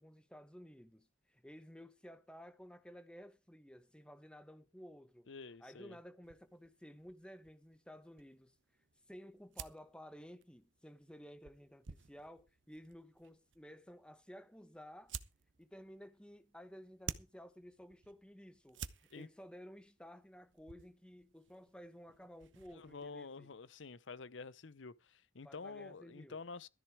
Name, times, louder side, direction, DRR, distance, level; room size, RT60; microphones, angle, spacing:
voice 1, 0.0-5.3 5.6-8.5 9.1-15.2 15.6-23.5 25.4-26.4, equal, 5° left, 1.1 m, -55 dB
voice 2, 5.3-6.0 19.1-19.3 22.7-26.7, left 4 dB, 85° left, 0.8 m, -49 dB
sound 1, 6.2-23.1, right 7 dB, 85° right, 0.8 m, -54 dB
13.5 x 10.5 x 4.8 m
head